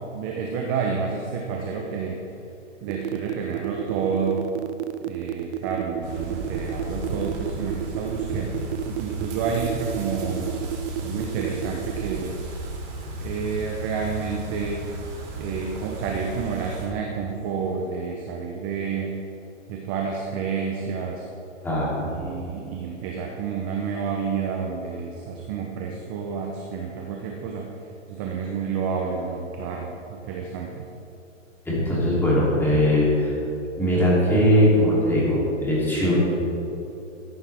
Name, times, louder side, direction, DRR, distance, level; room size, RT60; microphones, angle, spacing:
voice 1, 0.1-2.2 2.8-4.4 5.1-8.5 8.9-10.5 11.0-12.5 13.2-14.9 15.4-19.2 19.7-21.2 22.0-27.7 28.1-30.9, right 5 dB, 15° right, 0 dB, 0.5 m, -29 dB
sound 1, 2.9-12.2, right 15 dB, 60° right, 0.6 m, -30 dB
sound 2, 6.0-16.9, right 1 dB, 35° right, 2.8 m, -34 dB
voice 2, 21.6-22.1 31.6-33.3 33.8-36.2, equal, 5° left, -7 dB, 2.9 m, -20 dB
13.5 x 10.5 x 3.4 m, 2.8 s
hypercardioid pair, 150°, 38 cm